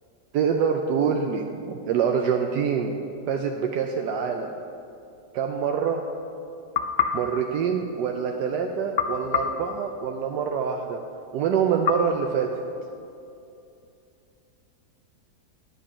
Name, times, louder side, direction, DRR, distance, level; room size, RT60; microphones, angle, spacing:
voice 1, 0.3-3.0 3.3-4.5 5.3-6.0 7.1-11.0 11.3-12.5, right 7 dB, 80° right, 3 dB, 1.2 m, -25 dB
sound 1, 6.7-8.3 9.0-10.6 11.9-13.2, left 7 dB, 85° left, 0.5 m, -30 dB
10.5 x 8.4 x 5.0 m, 2.6 s
omnidirectional pair, 1.8 m